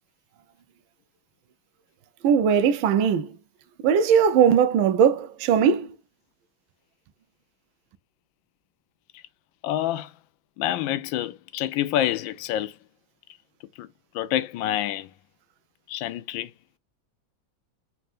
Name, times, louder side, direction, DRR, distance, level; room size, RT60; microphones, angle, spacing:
voice 1, 2.2-3.3 3.8-5.9, right 7 dB, 90° right, 1.4 m, -19 dB
voice 2, 9.6-10.1 10.6-12.7 13.8-13.9 14.1-15.1 15.9-16.5, left 12 dB, 80° left, 1.3 m, -27 dB
4.3 x 3.4 x 2.4 m
omnidirectional pair, 2.1 m